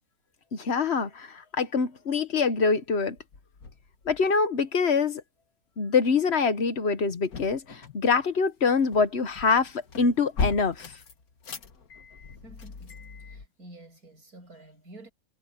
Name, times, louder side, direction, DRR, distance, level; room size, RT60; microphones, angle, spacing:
voice 1, 0.5-3.2 4.0-5.2 5.8-10.9, left 5 dB, 50° left, 1.3 m, -25 dB
sound 1, 2.4-2.7 3.2-4.4 7.0-13.5, left 4 dB, 75° left, 2.1 m, -38 dB
voice 2, 12.4-15.1, right 1 dB, 75° right, 8.7 m, -50 dB
omnidirectional pair, 1.6 m